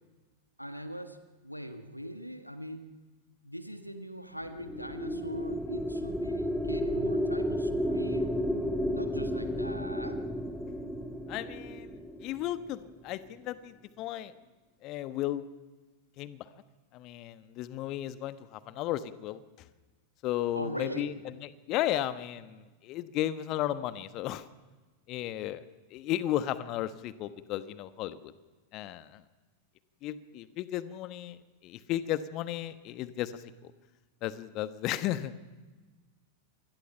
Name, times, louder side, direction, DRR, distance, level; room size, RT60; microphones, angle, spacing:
voice 1, 0.6-2.9 3.4-8.4 8.9-10.2 20.5-21.2, equal, 90° left, 9 dB, 1.5 m, -41 dB
sound 1, 4.4-13.0, equal, ahead, 2.4 m, -32 dB
voice 2, 11.3-14.3 14.8-15.5 16.2-16.5 16.9-19.4 20.2-21.1 21.4-24.5 25.1-25.6 25.9-28.3 28.7-29.2 30.0-33.7 34.2-35.3, left 13 dB, 40° left, 13 dB, 1.2 m, -34 dB
27.5 x 21.5 x 5.7 m, 1.2 s
figure-of-eight pair, 90°, 0 cm